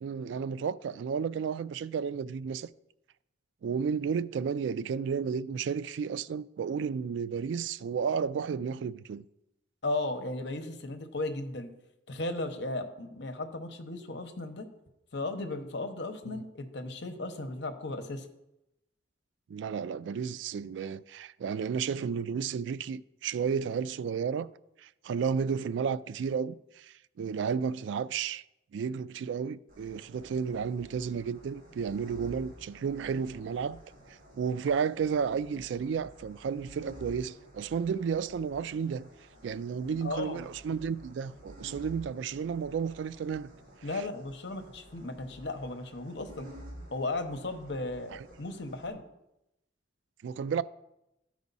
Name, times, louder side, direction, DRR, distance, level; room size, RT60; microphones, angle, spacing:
voice 1, 0.0-2.7 3.6-9.2 16.3-16.4 19.5-24.5 24.8-28.4 28.7-33.8 34.3-39.1 39.4-43.5 43.9-44.0 48.1-48.2 50.2-50.6, right 6 dB, 75° right, 0.3 m, -32 dB
voice 2, 9.8-11.7 12.1-14.7 15.1-18.3 40.0-40.5 43.8-46.5 46.9-49.0, left 2 dB, 60° left, 1.0 m, -35 dB
sound 1, 29.7-48.9, equal, 50° right, 2.2 m, -51 dB
13.5 x 4.8 x 4.1 m
head